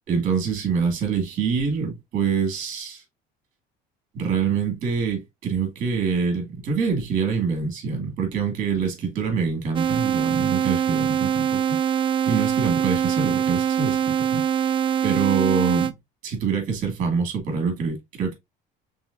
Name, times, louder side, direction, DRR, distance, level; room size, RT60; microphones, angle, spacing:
voice 1, 0.1-3.0 4.1-11.6 12.3-14.7 15.0-15.9 16.2-18.3, right 6 dB, 45° right, 1.9 m, -25 dB
sound 1, 9.7-15.9, right 8 dB, 25° right, 0.3 m, -23 dB
5.4 x 3.4 x 2.5 m
cardioid pair, 140°, 19 cm